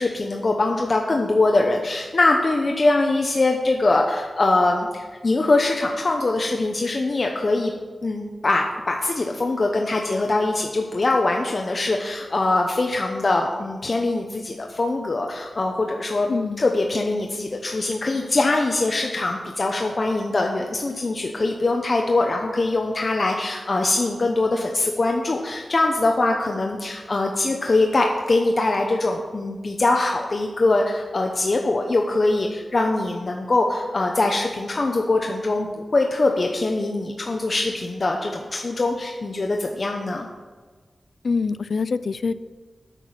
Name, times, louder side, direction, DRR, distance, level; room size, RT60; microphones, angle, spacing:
voice 1, 0.0-7.7 8.0-16.3 16.6-40.3, left 2 dB, 45° left, 2 dB, 0.9 m, -22 dB
voice 2, 16.3-16.6 41.2-42.3, left 4 dB, 65° left, 15 dB, 0.4 m, -24 dB
9.1 x 6.0 x 7.4 m, 1.4 s
wide cardioid pair, 90°, 0 cm